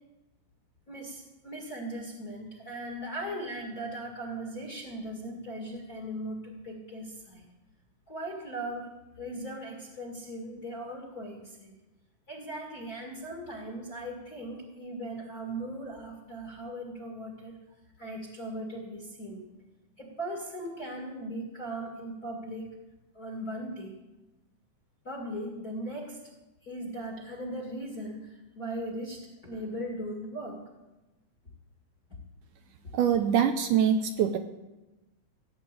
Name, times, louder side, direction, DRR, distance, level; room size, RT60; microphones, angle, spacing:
voice 1, 0.9-7.5 8.1-8.9 9.2-11.8 12.3-17.6 18.0-19.5 20.0-22.7 23.1-23.9 25.0-26.2 26.6-30.6, right 1 dB, 30° left, 0 dB, 2.1 m, -38 dB
voice 2, 32.9-34.4, right 8 dB, 75° right, 7 dB, 2.0 m, -24 dB
16.0 x 8.0 x 8.3 m, 1.0 s
omnidirectional pair, 4.0 m